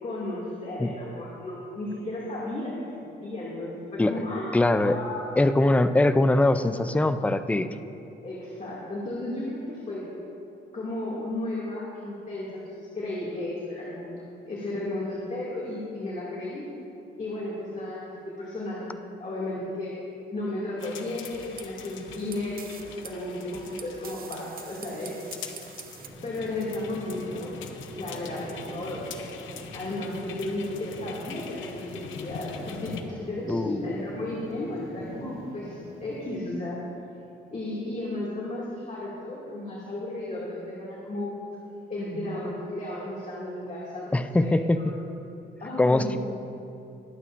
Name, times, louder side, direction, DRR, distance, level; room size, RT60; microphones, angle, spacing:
voice 1, 0.0-2.8 3.2-4.6 4.8-5.4 8.2-10.1 10.7-16.6 17.2-25.4 26.2-27.5 28.0-29.3 29.7-36.8 37.5-41.3 41.9-45.1 45.6-46.2, left 2 dB, 35° left, -6 dB, 2.2 m, -34 dB
voice 2, 4.0-5.0 5.4-7.7 33.5-33.9 44.1-44.8 45.8-46.2, left 2 dB, 5° left, 10 dB, 0.4 m, -22 dB
sound 1, 20.8-33.0, left 7 dB, 75° left, 0.8 m, -44 dB
sound 2, 21.0-26.1, right 7 dB, 45° right, 0.7 m, -46 dB
sound 3, 25.9-36.4, right 1 dB, 20° right, 2.7 m, -44 dB
21.5 x 8.2 x 2.5 m, 2.8 s
cardioid pair, 90°, 20 cm